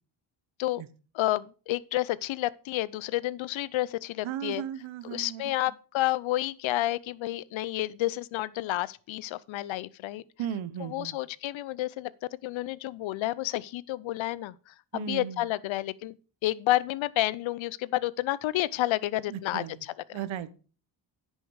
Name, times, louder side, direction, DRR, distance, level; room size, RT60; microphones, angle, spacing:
voice 1, 1.1-4.6 5.0-10.2 10.8-12.1 12.4-16.1 16.4-20.2, left 16 dB, 65° left, 0.7 m, -30 dB
voice 2, 4.2-5.5 10.4-11.2 14.9-15.4 19.3-19.8 20.1-20.5, right 9 dB, 65° right, 1.0 m, -35 dB
10.0 x 6.4 x 4.7 m
supercardioid pair, 55°, 50 cm